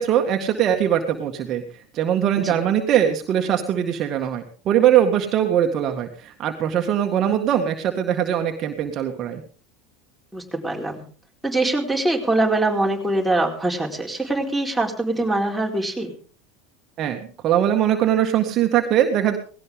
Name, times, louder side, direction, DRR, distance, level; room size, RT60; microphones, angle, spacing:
voice 1, 0.0-1.6 1.9-9.4 17.0-19.4, right 10 dB, 45° right, 4 dB, 1.9 m, -21 dB
voice 2, 10.3-11.0 11.4-16.1, right 2 dB, 5° right, -1 dB, 4.6 m, -23 dB
18.5 x 17.0 x 3.7 m, 0.42 s
hypercardioid pair, 80°, 0 cm